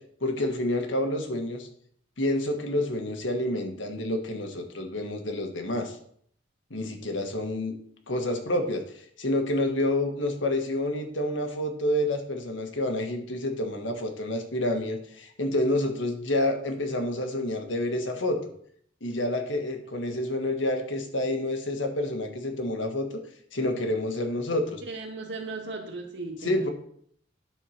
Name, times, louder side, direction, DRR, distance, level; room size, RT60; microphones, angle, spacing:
voice 1, 0.2-1.7 2.2-6.0 6.7-7.7 8.1-18.4 19.0-23.1 23.5-24.8 26.4-26.7, left 1 dB, 75° left, 4 dB, 1.6 m, -28 dB
voice 2, 24.9-26.7, right 3 dB, 65° right, 0 dB, 2.2 m, -36 dB
11.0 x 4.5 x 5.8 m, 0.63 s
head